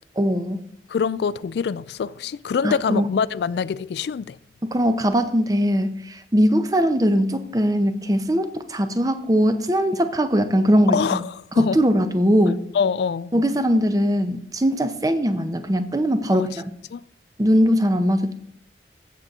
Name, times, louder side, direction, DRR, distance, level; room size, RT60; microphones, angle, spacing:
voice 1, 0.2-0.6 2.6-3.1 4.6-11.2 11.6-12.6 13.3-16.7 17.4-18.3, equal, 20° right, 0.7 m, -20 dB
voice 2, 0.9-4.4 10.9-11.8 12.7-13.3 16.3-16.5 16.9-17.0, left 6 dB, 70° left, 0.3 m, -25 dB
15.0 x 6.8 x 3.6 m
head